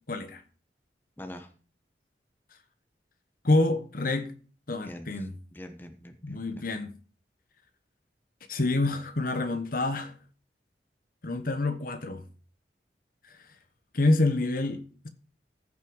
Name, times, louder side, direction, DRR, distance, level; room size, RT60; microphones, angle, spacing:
voice 1, 0.1-0.4 3.4-4.3 4.7-5.3 6.2-6.9 8.5-10.1 11.2-12.2 13.9-15.1, left 2 dB, 55° left, 1.2 m, -27 dB
voice 2, 1.2-1.5 4.8-6.6, left 1 dB, 10° left, 1.1 m, -45 dB
14.5 x 6.1 x 5.4 m
head